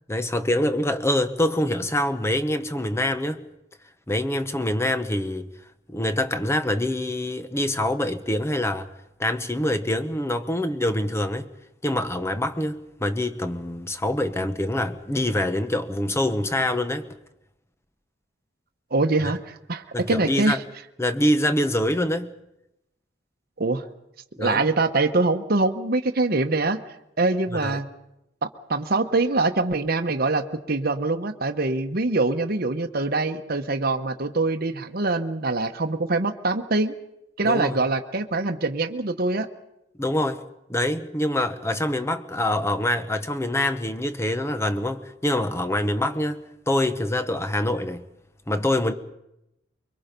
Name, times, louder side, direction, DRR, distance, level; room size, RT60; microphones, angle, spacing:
voice 1, 0.1-3.4 4.1-5.5 5.9-8.9 9.2-11.5 11.8-17.1 19.2-19.3 19.9-20.6 21.0-22.3 24.4-24.7 27.5-27.8 37.4-37.8 40.0-40.4 40.7-48.1 48.5-48.9, left 1 dB, 15° left, 1.0 m, -25 dB
voice 2, 18.9-20.6 23.6-23.9 24.4-26.8 27.2-27.9 28.7-36.9 37.4-39.5, right 3 dB, 50° right, 1.1 m, -24 dB
24.5 x 23.5 x 5.3 m
head